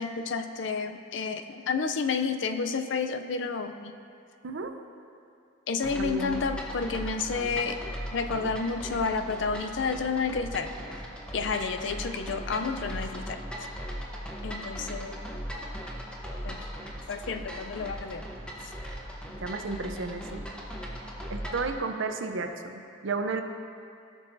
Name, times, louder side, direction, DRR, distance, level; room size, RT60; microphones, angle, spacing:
voice 1, 0.0-3.9 5.7-7.8 8.1-10.7 11.3-13.4 14.4-15.2 16.4-16.6 17.1-18.3, left 5 dB, 70° left, 8 dB, 0.5 m, -30 dB
sound 1, 5.8-21.7, equal, 5° left, 0.9 m, -38 dB
voice 2, 6.0-6.4 19.4-20.5 21.3-23.4, right 3 dB, 85° right, 6 dB, 0.6 m, -32 dB
16.0 x 6.2 x 2.6 m, 2.5 s
head